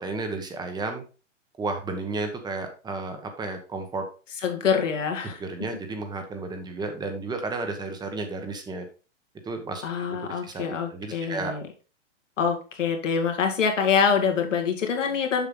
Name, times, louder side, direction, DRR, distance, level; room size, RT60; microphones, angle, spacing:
voice 1, 0.0-1.0 1.6-4.0 5.2-8.9 9.4-11.5, right 3 dB, 10° right, 6 dB, 1.2 m, -33 dB
voice 2, 4.4-5.4 9.8-11.6 12.4-15.5, left 6 dB, 80° left, 3 dB, 2.3 m, -25 dB
7.1 x 5.7 x 3.8 m, 0.35 s
hypercardioid pair, 135°, 37 cm